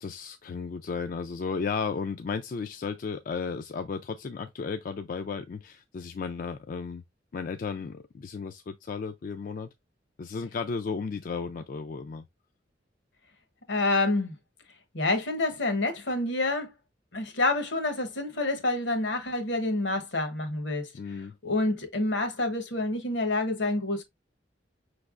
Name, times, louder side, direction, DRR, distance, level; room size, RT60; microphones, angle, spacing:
voice 1, 0.0-7.0 7.3-9.7 10.2-12.2 20.9-21.4, left 5 dB, 45° left, 0.3 m, -34 dB
voice 2, 13.7-14.3 14.9-16.7 17.1-20.9 21.4-24.0, left 2 dB, 75° left, 1.0 m, -28 dB
5.3 x 3.3 x 2.4 m
head